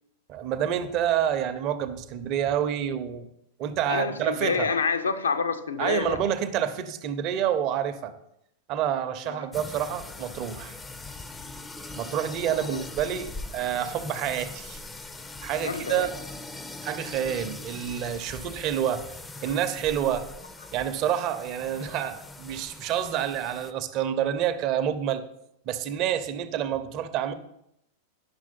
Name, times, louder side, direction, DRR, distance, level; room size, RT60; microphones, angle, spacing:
voice 1, 0.3-3.3 3.6-4.7 5.8-8.1 8.7-10.8 11.9-14.8 15.4-16.1 16.8-19.0 19.4-20.3 20.7-25.2 25.7-27.3, right 10 dB, 40° right, 0.7 m, -28 dB
voice 2, 3.9-6.2 9.2-9.4 12.7-12.8 15.6-16.1, left 5 dB, 70° left, 0.6 m, -28 dB
sound 1, 9.5-23.7, left 2 dB, 10° left, 0.5 m, -41 dB
9.6 x 6.1 x 4.2 m
figure-of-eight pair, 90°, 0 cm